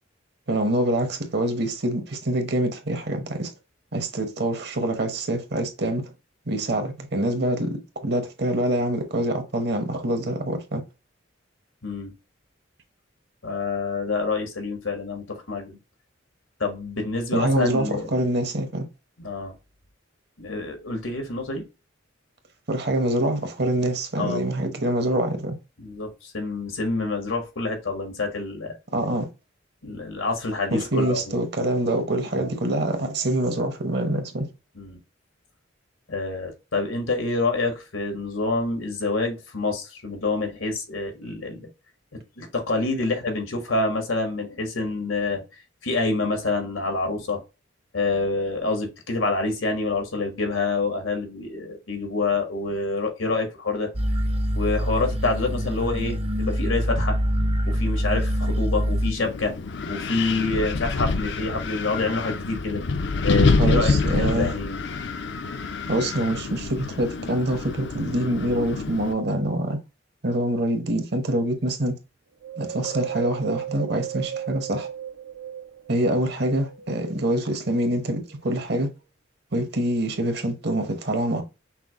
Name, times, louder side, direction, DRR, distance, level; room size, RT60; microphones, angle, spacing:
voice 1, 0.5-3.5 3.9-6.1 6.5-10.8 17.3-18.9 22.7-25.6 28.9-29.3 30.7-34.5 63.6-64.5 65.9-69.8 70.2-72.0 72.6-74.9 75.9-78.9 79.5-81.4, right 1 dB, 55° right, 1.0 m, -25 dB
voice 2, 11.8-12.1 13.4-15.8 16.6-18.1 19.2-19.5 20.4-21.6 24.2-24.5 25.8-28.8 29.8-31.3 32.3-32.5 34.7-35.0 36.1-41.7 42.1-45.4 45.8-47.4 47.9-53.9 54.5-57.2 57.7-59.5 59.9-62.8 63.2-64.8, left 3 dB, 85° left, 1.5 m, -27 dB
sound 1, 53.9-59.1, equal, 30° right, 0.6 m, -24 dB
Wind, 59.2-69.1, left 4 dB, 60° left, 0.5 m, -26 dB
Wind 2, 72.4-76.0 76.5-77.8 78.3-78.4, right 10 dB, 80° right, 0.6 m, -34 dB
5.9 x 2.1 x 3.6 m
head